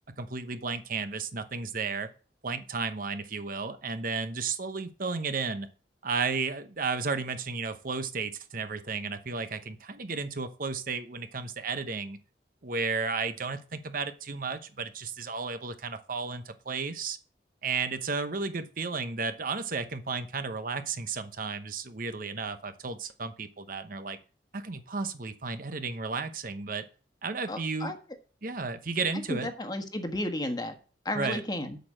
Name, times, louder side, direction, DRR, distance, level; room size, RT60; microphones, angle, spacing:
voice 1, 0.2-2.1 2.4-5.7 6.0-12.2 12.6-17.2 17.6-24.2 24.5-26.9 27.2-28.0 28.4-29.5 31.1-31.4, right 4 dB, 50° right, 10 dB, 1.0 m, -33 dB
voice 2, 27.5-27.9 29.3-30.7 31.0-31.8, left 1 dB, 25° left, 6 dB, 1.4 m, -33 dB
8.3 x 6.4 x 7.5 m, 0.38 s
head